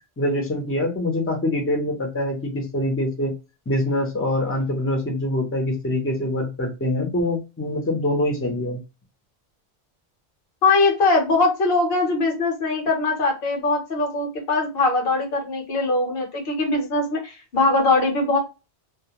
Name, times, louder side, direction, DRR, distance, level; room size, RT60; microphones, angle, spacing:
voice 1, 0.2-3.3 3.7-8.8, left 1 dB, 15° left, 2 dB, 0.5 m, -24 dB
voice 2, 10.6-18.4, left 3 dB, 60° left, 1 dB, 1.0 m, -21 dB
2.3 x 2.1 x 2.8 m, 0.28 s
omnidirectional pair, 1.1 m